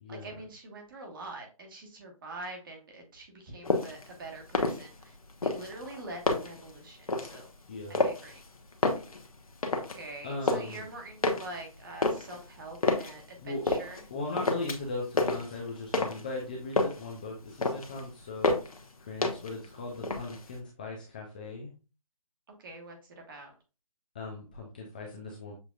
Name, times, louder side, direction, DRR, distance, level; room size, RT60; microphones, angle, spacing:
voice 1, 0.1-5.2 5.4-7.5 7.9-8.4 9.9-14.0 22.6-23.5, right 2 dB, 35° right, 2 dB, 1.3 m, -44 dB
sound 1, 3.6-4.1 4.4-5.1 5.4-6.7 7.1-7.4 7.9-8.4 8.7-10.0 10.3-10.8 11.2-13.2 13.7-14.1 14.4-14.9 15.2-16.3 16.6-17.1 17.4-18.0 18.4-18.8 19.2-19.7 20.0-20.6, left 3 dB, 75° left, 1.0 m, -29 dB
voice 2, 7.7-8.1 10.2-10.8 13.4-13.6 14.1-18.6 19.1-21.7 24.1-25.5, left 2 dB, 15° left, -1 dB, 0.4 m, -38 dB
6.7 x 2.8 x 2.3 m, 0.32 s
figure-of-eight pair, 155°, 18 cm